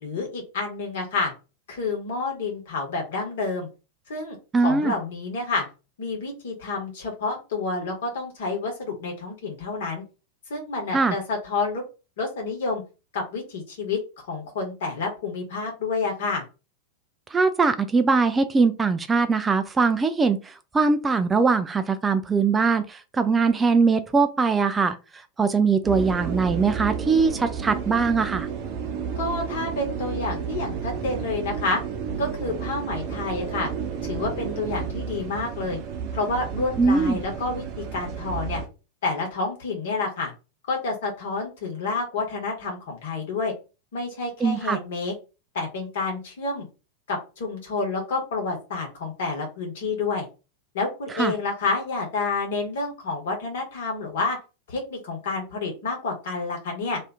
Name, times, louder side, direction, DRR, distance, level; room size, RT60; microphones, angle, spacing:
voice 1, 0.0-1.3 1.7-3.7 4.1-5.6 6.0-10.0 10.5-11.8 12.2-12.8 13.1-14.0 14.3-16.4 29.2-31.8 32.2-33.7 34.0-35.8 36.1-38.6 39.0-40.3 40.7-43.5 43.9-45.1 45.5-46.7 47.1-50.3 50.7-54.4 54.7-57.0, left 3 dB, 55° left, 1.2 m, -29 dB
voice 2, 4.5-4.9 10.9-11.2 17.3-25.0 25.4-28.5 36.8-37.2 44.4-44.8 51.2-51.3, right 4 dB, 15° right, 0.3 m, -21 dB
sound 1, 25.8-38.7, right 7 dB, 45° right, 0.7 m, -32 dB
2.7 x 2.4 x 3.5 m
figure-of-eight pair, 90°, 0 cm